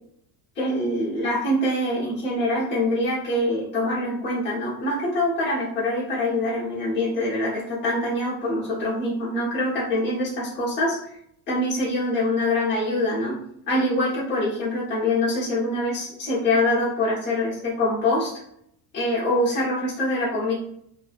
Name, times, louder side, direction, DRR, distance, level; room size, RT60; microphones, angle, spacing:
voice 1, 0.6-11.0 11.5-13.4 13.7-18.3 18.9-20.5, left 1 dB, 25° left, -6 dB, 0.9 m, -24 dB
2.6 x 2.1 x 2.4 m, 0.71 s
cardioid pair, 175°, 43 cm